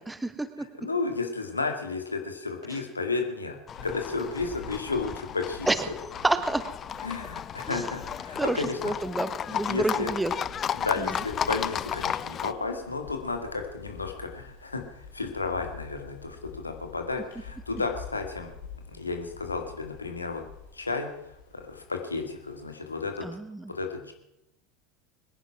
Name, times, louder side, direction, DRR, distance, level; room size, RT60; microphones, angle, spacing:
voice 1, 0.0-0.6 5.7-5.8 6.2-6.6 7.7-7.9 8.4-10.3 23.2-23.6, right 2 dB, 10° right, 11 dB, 1.3 m, -28 dB
voice 2, 0.6-5.7 7.0-8.9 9.7-10.1 10.7-18.5 18.9-20.4 20.7-21.2 21.5-23.3 23.7-24.1, left 3 dB, 85° left, 5 dB, 2.1 m, -32 dB
sound 1, 3.7-23.4, left 5 dB, 70° left, 5.4 m, -48 dB
Livestock farm animals working animals, 3.7-12.5, left 8 dB, 30° left, 0.5 m, -34 dB
21.5 x 10.5 x 6.0 m, 0.85 s
figure-of-eight pair, 75°, 0 cm